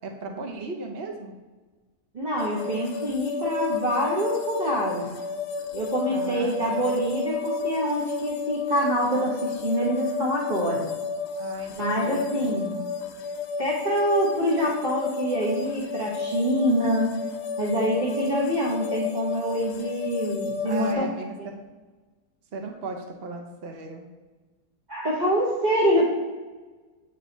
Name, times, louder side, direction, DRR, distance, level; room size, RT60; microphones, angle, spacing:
voice 1, 0.0-1.3 6.1-7.0 11.4-12.3 20.6-21.7 22.5-24.1 26.0-26.1, right 4 dB, 55° right, 2 dB, 0.6 m, -36 dB
voice 2, 2.1-5.0 5.7-10.8 11.8-12.7 13.6-17.1 17.6-21.0 24.9-26.0, equal, 30° right, -7 dB, 1.3 m, -25 dB
sound 1, 2.4-20.9, left 4 dB, 80° left, 1.1 m, -32 dB
8.4 x 3.2 x 4.0 m, 1.3 s
omnidirectional pair, 1.8 m